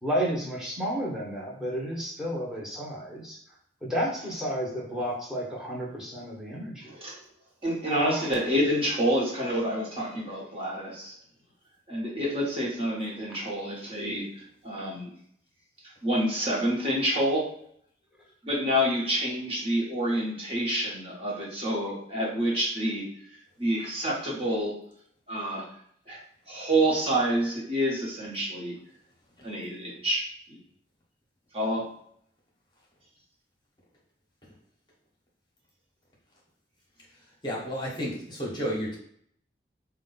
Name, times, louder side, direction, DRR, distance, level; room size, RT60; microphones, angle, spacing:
voice 1, 0.0-7.0 7.9-8.3, equal, 5° right, -5 dB, 1.0 m, -32 dB
voice 2, 6.9-7.2 7.6-11.2 11.9-15.1 16.0-17.5 18.4-23.1 23.6-24.8 25.3-25.7 26.1-26.2 26.5-28.8 29.4-30.6 31.5-31.9, equal, 30° right, -5 dB, 1.1 m, -28 dB
voice 3, 37.4-39.0, equal, 25° left, -4 dB, 0.9 m, -32 dB
4.5 x 2.3 x 3.9 m, 0.66 s
head